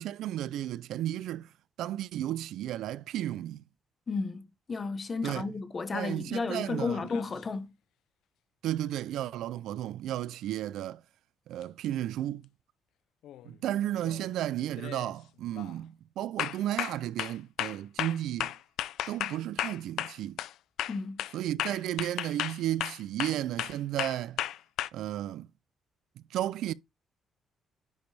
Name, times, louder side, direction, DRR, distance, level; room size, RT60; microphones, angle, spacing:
voice 1, 0.0-1.5 1.8-3.6 5.2-5.5 5.9-7.0 8.6-11.0 11.5-12.5 13.4-18.5 19.1-20.4 21.3-24.4 24.9-25.5 26.3-26.7, right 12 dB, 85° right, 0.4 m, -33 dB
voice 2, 4.1-7.7 20.9-21.2, left 4 dB, 25° left, 0.9 m, -33 dB
sound 1, 6.7-7.4 11.6-11.7 13.2-13.5 14.0-14.3 14.8-15.1 15.5-15.8 16.4-20.5 20.8-24.9, left 13 dB, 85° left, 0.4 m, -35 dB
10.5 x 5.1 x 3.3 m
cardioid pair, 180°, 0 cm